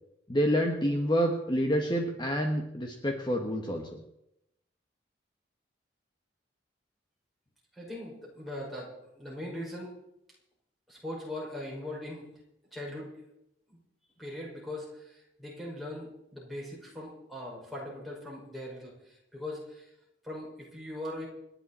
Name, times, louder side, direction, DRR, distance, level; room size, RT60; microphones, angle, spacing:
voice 1, 0.3-4.0, equal, 25° left, 2 dB, 1.4 m, -28 dB
voice 2, 7.8-8.9 9.1-9.9 10.9-12.3 12.7-13.2 14.2-16.1 16.3-19.8 20.2-21.3, left 1 dB, ahead, -5 dB, 5.8 m, -40 dB
28.5 x 10.5 x 4.4 m, 0.82 s
head